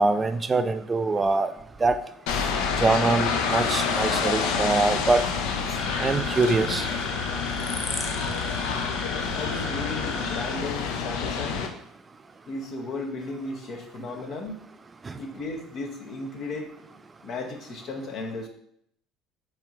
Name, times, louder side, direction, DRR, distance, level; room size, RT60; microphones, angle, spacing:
voice 1, 0.0-1.5 1.8-2.0 2.8-5.2 6.0-6.9 15.1-15.2, right 3 dB, 25° right, 10 dB, 0.3 m, -23 dB
sound 1, 2.3-11.7, left 5 dB, 75° left, 0.5 m, -28 dB
sound 2, 5.7-10.5, left 1 dB, 25° left, 0.8 m, -35 dB
voice 2, 9.3-11.6 12.5-14.7 15.2-16.7 17.2-18.5, left 3 dB, 55° left, 3 dB, 0.9 m, -35 dB
4.4 x 3.2 x 3.8 m, 0.70 s
hypercardioid pair, 75°, 0 cm